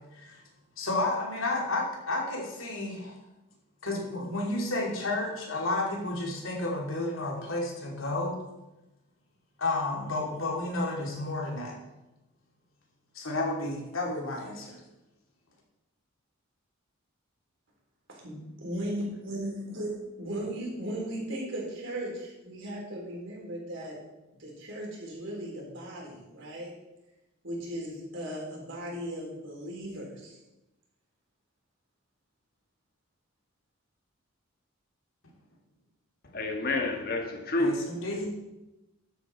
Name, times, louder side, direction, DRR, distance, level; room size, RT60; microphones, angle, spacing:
voice 1, 0.8-3.1 3.8-8.4 9.6-11.8 13.1-14.8 37.6-38.3, left 2 dB, 70° left, -1 dB, 2.8 m, -31 dB
voice 2, 18.1-24.0 24.4-26.7 27.4-30.4, right 1 dB, 60° right, -3 dB, 4.0 m, -37 dB
voice 3, 36.3-37.7, left 2 dB, 45° left, 3 dB, 1.5 m, -28 dB
12.5 x 8.1 x 4.4 m, 0.97 s
head